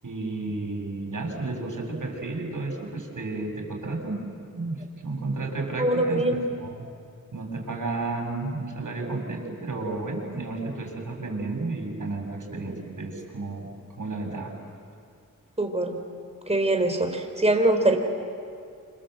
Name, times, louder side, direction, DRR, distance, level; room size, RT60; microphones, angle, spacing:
voice 1, 0.0-4.2 4.5-4.8 5.0-6.2 6.6-6.8 7.3-13.7 14.0-14.5, right 3 dB, 65° right, 1 dB, 7.1 m, -32 dB
voice 2, 5.8-6.4 15.6-16.0 16.5-18.0, right 1 dB, 20° right, 5 dB, 4.3 m, -23 dB
28.5 x 27.0 x 7.9 m, 2.3 s
cardioid pair, 55°, 33 cm